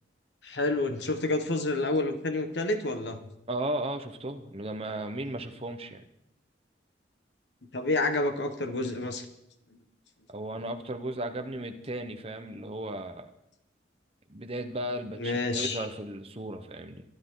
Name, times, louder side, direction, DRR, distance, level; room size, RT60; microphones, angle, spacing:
voice 1, 0.4-3.2 7.7-9.2 15.2-15.9, left 2 dB, 75° left, 7 dB, 1.5 m, -29 dB
voice 2, 3.5-6.0 10.3-13.3 14.3-17.0, right 1 dB, 35° right, 6 dB, 1.0 m, -35 dB
23.0 x 11.0 x 4.0 m, 0.82 s
head